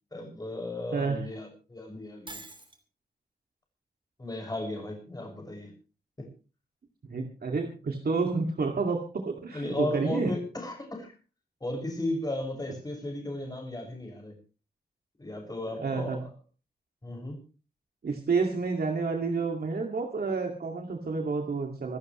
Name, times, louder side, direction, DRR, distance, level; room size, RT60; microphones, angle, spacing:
voice 1, 0.1-2.4 4.2-5.7 6.2-6.3 9.5-11.1 11.6-14.3 15.2-16.3 17.0-17.4, left 1 dB, 20° left, 2 dB, 6.6 m, -35 dB
voice 2, 0.9-1.3 7.1-10.3 15.7-16.3 18.0-22.0, right 4 dB, 70° right, 2 dB, 2.4 m, -29 dB
Shatter, 2.3-2.8, right 2 dB, 30° right, 2.8 m, -44 dB
26.0 x 12.5 x 3.2 m, 0.35 s
wide cardioid pair, 135°, 17 cm